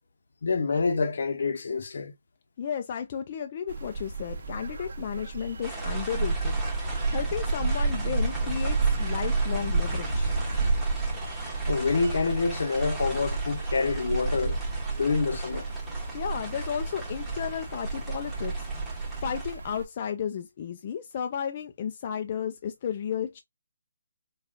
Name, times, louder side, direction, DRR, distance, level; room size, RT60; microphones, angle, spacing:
voice 1, 0.4-2.1 11.3-14.6 14.9-15.7, left 4 dB, 60° left, 0.7 m, -27 dB
voice 2, 2.6-10.4 16.1-23.4, left 8 dB, 30° left, 0.4 m, -33 dB
sound 1, 3.7-19.8, right 3 dB, 55° right, 1.0 m, -30 dB
sound 2, 5.6-19.5, right 2 dB, ahead, 1.0 m, -41 dB
4.9 x 2.3 x 2.5 m
hypercardioid pair, 170°, 0 cm